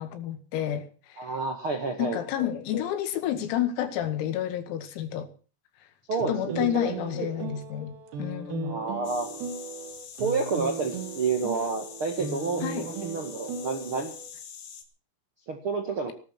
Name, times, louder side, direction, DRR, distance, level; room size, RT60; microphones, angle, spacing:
voice 1, 0.0-1.3 2.0-5.3 6.3-8.8 12.6-12.9, left 10 dB, 90° left, 4.8 m, -30 dB
voice 2, 1.2-2.2 6.1-6.9 7.2-7.5 8.6-9.3 10.2-14.1 15.5-16.1, right 4 dB, 90° right, 1.2 m, -30 dB
sound 1, 6.2-14.3, right 5 dB, 60° right, 4.2 m, -37 dB
sound 2, 9.0-14.8, left 7 dB, 65° left, 4.7 m, -44 dB
18.5 x 12.0 x 6.0 m
omnidirectional pair, 6.0 m